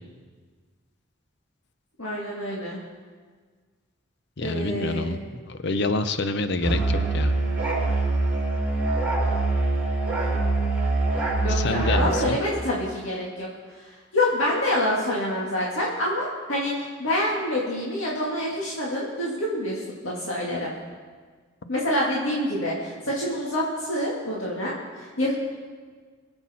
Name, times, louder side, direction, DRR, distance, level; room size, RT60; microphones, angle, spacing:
voice 1, 2.0-2.8 4.4-5.2 11.4-20.7 21.7-25.3, left 1 dB, 80° left, -4 dB, 2.0 m, -27 dB
voice 2, 4.4-7.4 11.5-12.4, left 3 dB, 60° left, 10 dB, 0.7 m, -27 dB
Musical instrument, 6.6-12.3, right 2 dB, 5° right, 3.5 m, -24 dB
23.0 x 7.9 x 4.3 m, 1.5 s
head